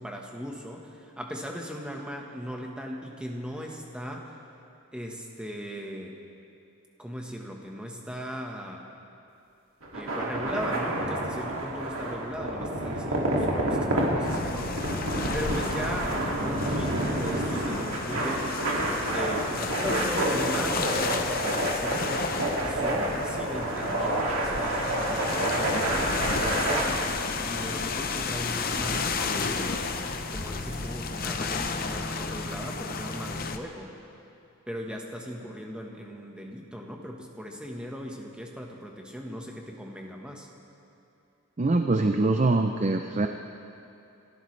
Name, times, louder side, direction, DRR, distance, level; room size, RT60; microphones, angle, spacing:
voice 1, 0.0-4.3 4.9-6.2 7.0-8.8 9.9-14.8 15.3-18.7 19.1-22.1 22.6-27.0 27.4-29.9 30.3-33.9 34.7-40.5, equal, 5° right, 0 dB, 1.3 m, -38 dB
sound 1, 9.8-26.8, right 1 dB, 75° right, 2.4 m, -29 dB
sound 2, 14.2-33.6, left 4 dB, 45° left, 0.7 m, -32 dB
voice 2, 41.6-43.3, right 2 dB, 35° right, 5 dB, 0.5 m, -23 dB
30.0 x 13.0 x 3.3 m, 2.7 s
head